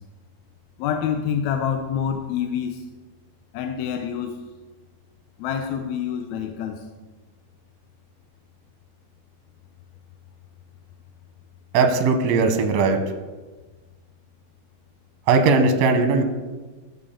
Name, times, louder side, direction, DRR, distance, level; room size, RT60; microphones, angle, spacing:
voice 1, 0.8-2.9 3.5-4.4 5.4-6.9, left 8 dB, 75° left, 6 dB, 1.8 m, -27 dB
voice 2, 11.7-13.0 15.3-16.2, right 4 dB, 70° right, 6 dB, 2.0 m, -18 dB
13.5 x 7.0 x 3.8 m, 1.3 s
omnidirectional pair, 3.7 m